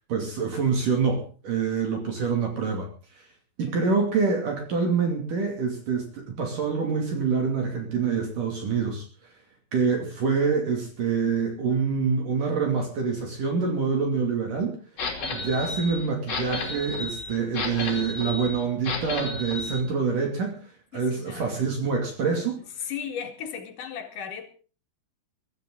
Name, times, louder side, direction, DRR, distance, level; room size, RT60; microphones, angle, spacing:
voice 1, 0.1-2.9 3.1-3.3 3.6-9.1 9.7-14.8 15.3-22.6, right 5 dB, 55° right, 2 dB, 4.1 m, -26 dB
sound 1, 15.0-19.8, left 3 dB, 40° left, 3.9 m, -32 dB
voice 2, 20.9-21.6 22.8-24.5, left 8 dB, 55° left, 4 dB, 3.3 m, -36 dB
23.5 x 13.5 x 3.9 m, 0.37 s
omnidirectional pair, 4.8 m